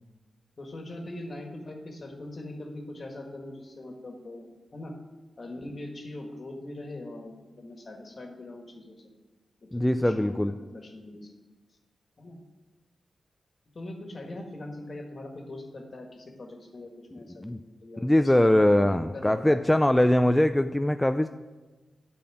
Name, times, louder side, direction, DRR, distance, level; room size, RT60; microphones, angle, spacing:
voice 1, 0.6-4.9 5.4-9.1 9.6-11.3 12.2-12.4 13.7-19.6, left 1 dB, 55° left, 3 dB, 1.6 m, -42 dB
voice 2, 9.7-10.5 17.1-17.6 18.0-21.3, left 1 dB, 15° left, 8 dB, 0.3 m, -22 dB
8.4 x 4.3 x 7.2 m, 1.2 s
cardioid pair, 45°, 0 cm